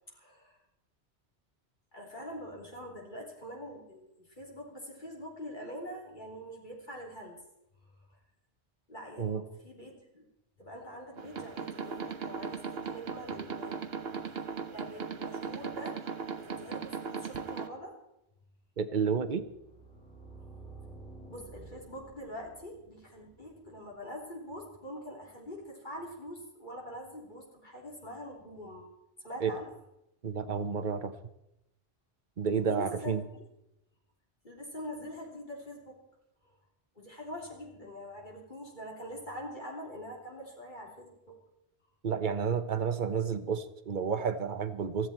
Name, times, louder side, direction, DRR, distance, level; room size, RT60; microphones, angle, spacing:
voice 1, 0.1-0.6 1.9-7.4 8.1-8.2 8.9-10.3 10.6-18.0 21.3-28.9 29.2-29.7 32.6-33.2 34.4-36.0 36.4-36.6 37.0-41.4, equal, 45° left, -2 dB, 3.7 m, -44 dB
sound 1, 11.2-17.7, right 5 dB, 65° right, 1.2 m, -38 dB
voice 2, 18.8-19.4 29.4-29.5 30.2-31.1 32.4-33.2 42.0-45.1, right 6 dB, 45° right, 10 dB, 1.1 m, -30 dB
sound 2, 19.4-24.3, right 3 dB, 5° left, 2.0 m, -52 dB
19.0 x 14.5 x 4.4 m, 0.86 s
omnidirectional pair, 1.1 m